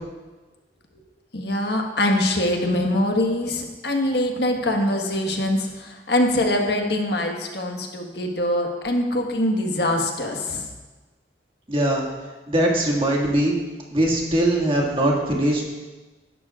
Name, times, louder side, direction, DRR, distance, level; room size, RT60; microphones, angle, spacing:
voice 1, 1.3-10.7, left 1 dB, 65° left, 2 dB, 1.5 m, -23 dB
voice 2, 11.7-12.0 12.5-13.6 13.9-15.6, right 1 dB, 30° right, -1 dB, 2.0 m, -21 dB
18.0 x 11.5 x 2.5 m, 1.2 s
head